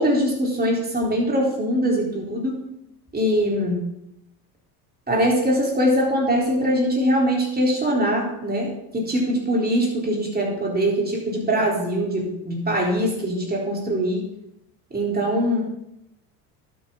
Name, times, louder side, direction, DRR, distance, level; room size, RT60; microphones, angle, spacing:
voice 1, 0.0-2.6 3.1-3.8 5.1-14.3 14.9-15.6, equal, 20° right, -2 dB, 4.1 m, -22 dB
12.0 x 8.7 x 4.0 m, 0.82 s
hypercardioid pair, 80°, 45 cm